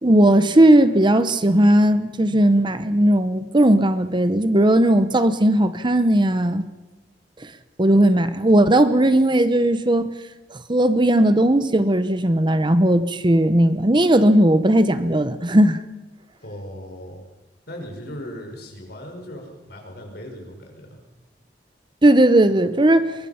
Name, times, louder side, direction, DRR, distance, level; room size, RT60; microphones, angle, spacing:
voice 1, 0.0-6.7 7.4-7.5 7.8-10.1 10.7-15.8 22.0-23.1, right 1 dB, 25° right, 0.9 m, -17 dB
voice 2, 16.4-17.2 17.7-21.0, equal, 60° left, 5.6 m, -37 dB
23.5 x 21.0 x 5.8 m
head